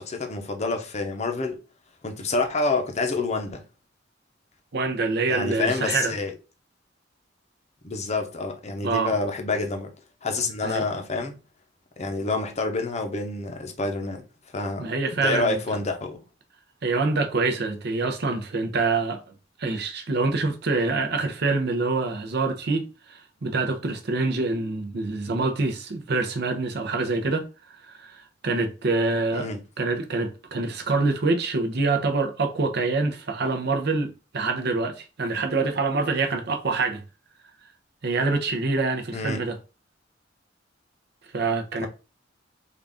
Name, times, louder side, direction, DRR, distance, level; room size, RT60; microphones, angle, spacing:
voice 1, 0.0-1.6 2.0-3.6 5.3-6.3 7.8-9.9 10.2-11.4 12.0-14.2 14.5-14.9 15.2-16.2 29.3-29.6 39.1-39.5 41.8-41.9, left 3 dB, 35° left, 0.7 m, -28 dB
voice 2, 4.7-6.1 8.8-9.1 10.6-10.8 14.8-15.6 16.8-19.2 19.6-29.5 29.8-37.0 38.0-39.6 41.3-41.9, right 3 dB, 60° right, 0.7 m, -26 dB
3.8 x 2.4 x 3.5 m
head